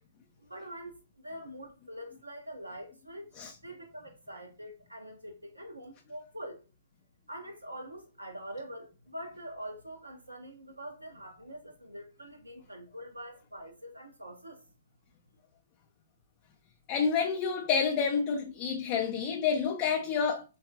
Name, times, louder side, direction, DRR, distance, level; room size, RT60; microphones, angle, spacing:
voice 1, 0.4-1.0 1.2-3.2 3.6-6.6 7.3-14.6, equal, 80° right, 0.5 m, -44 dB
voice 2, 16.9-20.4, left 6 dB, 30° left, 0.3 m, -29 dB
3.5 x 2.3 x 2.6 m
figure-of-eight pair, 120°, 0 cm